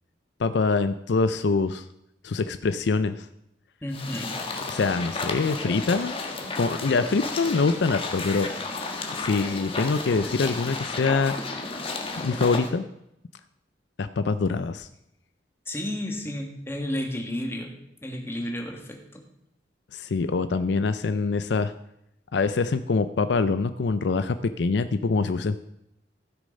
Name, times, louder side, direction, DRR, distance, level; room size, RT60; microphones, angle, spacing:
voice 1, 0.4-1.8 2.2-3.3 4.7-6.1 6.6-8.5 9.1-11.3 12.2-12.9 14.0-14.9 19.9-21.7 22.3-25.6, left 4 dB, 65° left, 11 dB, 0.5 m, -24 dB
voice 2, 3.8-4.4 15.6-17.7 18.0-19.2, left 1 dB, 15° left, 2 dB, 1.6 m, -32 dB
sound 1, 3.9-12.7, left 3 dB, 30° left, 1.4 m, -33 dB
15.0 x 6.5 x 5.2 m, 0.81 s
head